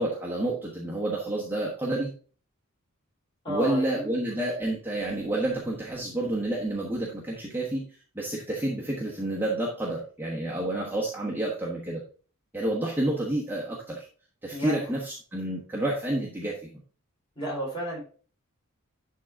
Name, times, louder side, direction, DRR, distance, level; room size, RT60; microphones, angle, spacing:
voice 1, 0.0-2.1 3.5-7.9 8.1-12.0 12.5-14.1 14.4-16.7, right 1 dB, 10° right, -4 dB, 1.2 m, -29 dB
voice 2, 3.4-4.1 14.5-14.8 17.4-18.0, right 1 dB, 20° left, -4 dB, 4.1 m, -32 dB
11.0 x 3.8 x 3.6 m, 0.40 s
head